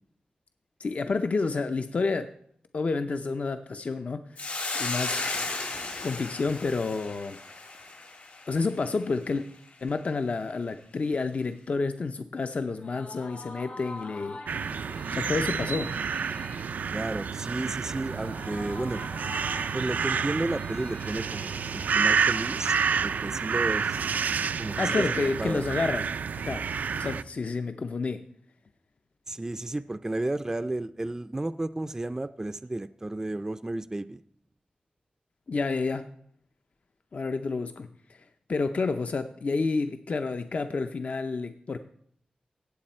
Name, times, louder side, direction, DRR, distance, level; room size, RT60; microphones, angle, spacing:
voice 1, 0.8-2.3 2.7-5.2 6.0-7.4 8.5-9.4 9.8-14.4 15.1-15.9 24.8-26.1 26.3-26.7 26.9-28.3 35.5-36.1 37.1-41.8, left 4 dB, 55° left, 8 dB, 0.6 m, -30 dB
Hiss, 4.4-8.9, left 3 dB, 70° left, 3.0 m, -34 dB
sound 1, 12.7-22.4, left 2 dB, 85° left, 3.3 m, -46 dB
sound 2, 14.5-27.2, right 6 dB, 90° right, 0.4 m, -29 dB
voice 2, 16.9-19.0 19.7-24.0 24.6-25.1 25.4-25.7 29.3-34.2, right 2 dB, 20° right, 11 dB, 0.4 m, -32 dB
16.5 x 8.0 x 4.3 m, 0.67 s
wide cardioid pair, 95°, 3 cm